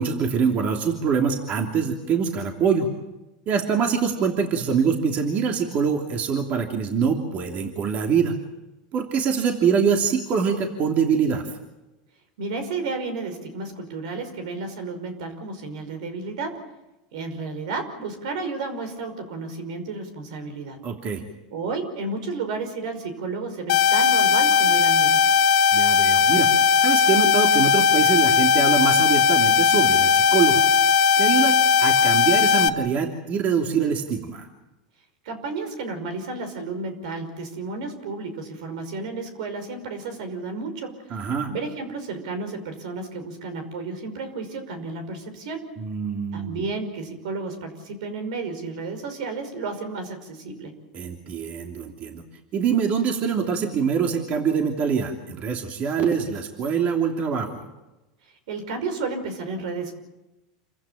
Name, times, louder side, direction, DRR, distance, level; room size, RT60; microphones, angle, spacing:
voice 1, 0.0-2.9 3.5-8.3 8.9-11.4 20.8-21.2 25.7-26.5 26.8-30.6 31.2-34.4 41.1-41.5 45.8-46.6 50.9-52.2 52.5-57.7, right 6 dB, 40° right, 3 dB, 3.0 m, -24 dB
voice 2, 12.4-16.6 17.1-20.8 21.5-25.2 35.3-40.9 41.5-45.7 46.3-50.7 58.5-59.9, right 3 dB, 80° right, 8 dB, 5.4 m, -32 dB
sound 1, 23.7-32.7, left 6 dB, 70° left, 1.3 m, -18 dB
28.0 x 15.5 x 8.9 m, 1.0 s
supercardioid pair, 120°, 4 cm